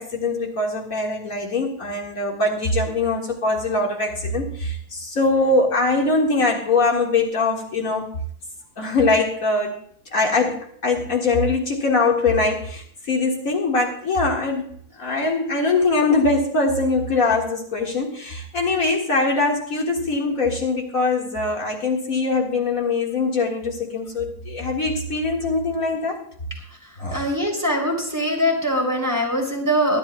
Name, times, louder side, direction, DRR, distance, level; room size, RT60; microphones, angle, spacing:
voice 1, 0.0-8.1 8.8-9.8 10.1-14.7 15.0-26.2 27.0-27.2, left 3 dB, 60° left, -1 dB, 2.3 m, -22 dB
voice 2, 27.1-30.0, equal, 10° right, 0 dB, 3.3 m, -22 dB
22.5 x 11.5 x 2.3 m, 0.62 s
omnidirectional pair, 1.6 m